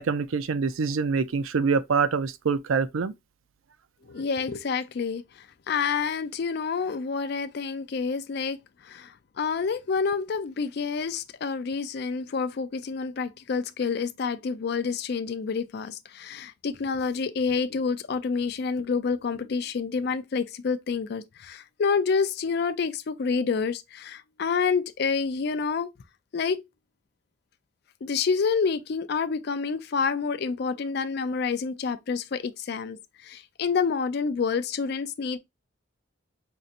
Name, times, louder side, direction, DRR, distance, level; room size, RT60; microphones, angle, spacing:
voice 1, 0.0-3.1, right 5 dB, 85° right, 0.4 m, -25 dB
voice 2, 4.1-8.6 8.8-25.9 26.3-26.6 28.0-35.4, left 5 dB, 55° left, 0.4 m, -28 dB
5.2 x 2.7 x 2.5 m
head